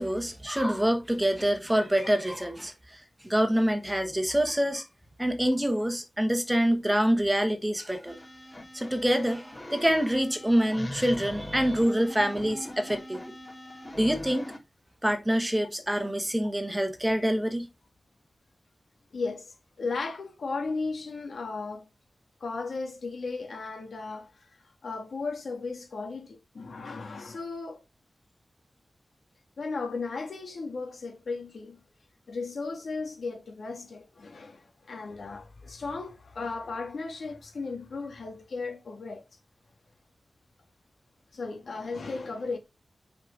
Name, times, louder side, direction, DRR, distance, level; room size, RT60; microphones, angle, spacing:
voice 1, 0.0-4.8 5.2-8.2 8.7-13.3 14.0-14.5 15.0-17.7, equal, 10° right, 1.3 m, -26 dB
sound 1, 8.1-14.6, left 1 dB, 25° left, 3.1 m, -41 dB
voice 2, 19.1-21.9 22.4-24.5 24.8-27.8 29.6-31.8 32.3-39.3 41.3-42.6, left 4 dB, 80° left, 2.2 m, -35 dB
6.5 x 5.1 x 3.9 m
wide cardioid pair, 105°, 0 cm